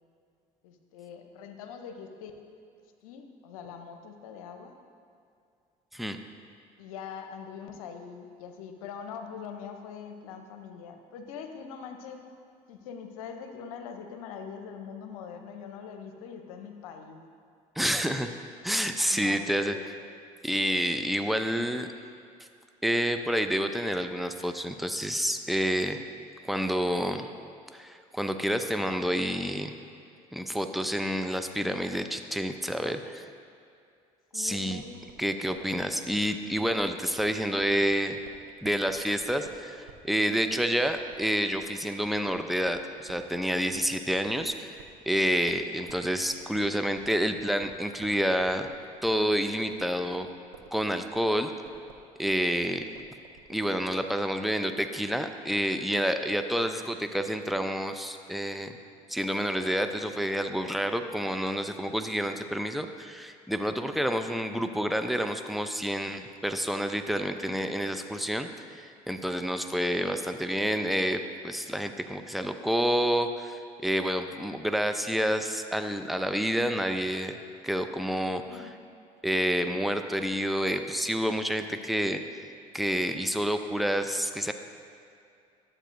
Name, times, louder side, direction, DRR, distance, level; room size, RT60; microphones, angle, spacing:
voice 1, 0.6-2.3 3.0-4.8 6.8-12.2 12.7-17.2 19.1-19.9 34.3-35.0 78.5-78.8, left 6 dB, 85° left, 6 dB, 0.7 m, -43 dB
voice 2, 17.8-18.3 18.6-19.8 20.4-21.9 22.8-26.0 26.4-27.3 27.7-29.7 30.3-33.3 34.3-34.8 35.2-38.2 38.6-44.8 45.1-48.7 49.0-50.3 50.7-51.5 52.2-52.9 53.5-58.8 59.1-73.6 73.8-77.4 77.6-78.4 79.2-82.2 82.7-84.5, equal, ahead, 7 dB, 0.5 m, -28 dB
sound 1, 34.5-45.0 45.2-54.0, right 6 dB, 85° right, 0.6 m, -52 dB
11.5 x 7.7 x 2.6 m, 2.4 s
hypercardioid pair, 60°, 18 cm